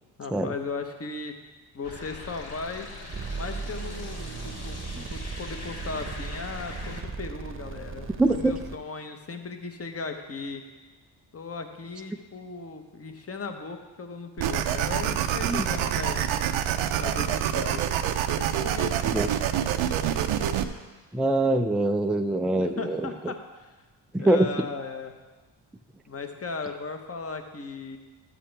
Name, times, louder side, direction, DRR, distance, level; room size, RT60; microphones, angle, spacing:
voice 1, 0.2-1.3 1.7-2.9 3.3-4.8 5.1-10.6 11.3-16.5 17.0-17.8 18.3-19.2 22.6-23.7 24.2-25.2 26.1-28.0, left 4 dB, 30° left, 6 dB, 1.1 m, -37 dB
sound 1, 1.8-7.0, left 2 dB, 55° left, 1.8 m, -42 dB
sound 2, 3.1-8.8, right 4 dB, 25° right, 0.9 m, -37 dB
voice 2, 8.2-8.5 15.4-15.6 19.1-19.3 21.1-23.3 24.1-24.5, right 2 dB, ahead, 6 dB, 0.3 m, -24 dB
sound 3, 14.4-20.6, right 10 dB, 75° right, 0.7 m, -26 dB
12.0 x 7.6 x 3.4 m, 1.3 s
cardioid pair, 65°, 47 cm